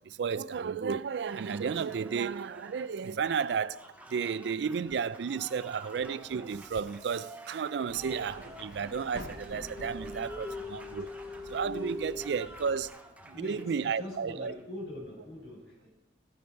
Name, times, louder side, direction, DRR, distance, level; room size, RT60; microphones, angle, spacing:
voice 1, 0.1-3.8 4.1-11.1 11.5-12.9 13.4-14.5, right 6 dB, 75° right, 0.4 m, -33 dB
Applause, 1.0-14.6, right 2 dB, 10° right, 0.8 m, -51 dB
sound 1, 7.9-12.9, left 1 dB, 60° left, 1.2 m, -48 dB
sound 2, 9.1-12.4, left 2 dB, 20° left, 0.7 m, -42 dB
voice 2, 13.3-15.9, left 1 dB, 80° left, 4.9 m, -43 dB
15.0 x 8.4 x 4.5 m
head